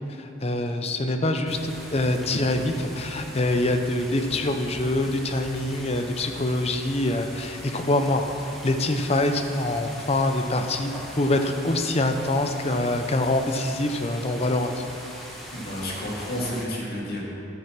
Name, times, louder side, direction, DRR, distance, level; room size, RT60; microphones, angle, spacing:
voice 1, 0.2-14.7, left 1 dB, 30° left, 6 dB, 0.6 m, -25 dB
sound 1, 1.5-16.6, equal, ahead, 1.3 m, -41 dB
voice 2, 15.5-17.2, left 1 dB, 55° left, -4 dB, 2.3 m, -31 dB
11.5 x 7.1 x 6.0 m, 2.8 s
head